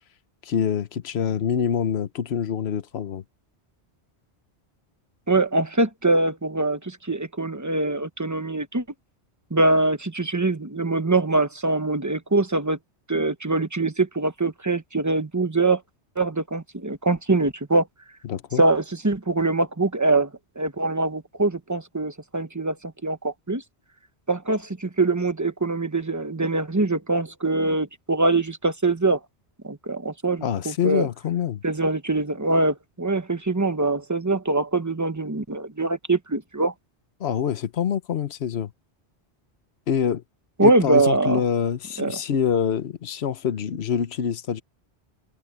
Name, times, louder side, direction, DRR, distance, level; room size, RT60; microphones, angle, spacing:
voice 1, 0.4-3.2 18.3-18.6 30.4-31.6 37.2-38.7 39.9-40.2 40.6-44.6, left 8 dB, 65° left, 1.1 m, -25 dB
voice 2, 5.3-8.8 9.5-12.8 13.1-15.8 16.2-17.9 18.6-20.3 20.6-23.6 24.3-29.2 29.6-31.1 31.6-36.7 40.6-41.4 42.0-42.2, right 2 dB, 15° right, 1.0 m, -23 dB
omnidirectional pair, 1.1 m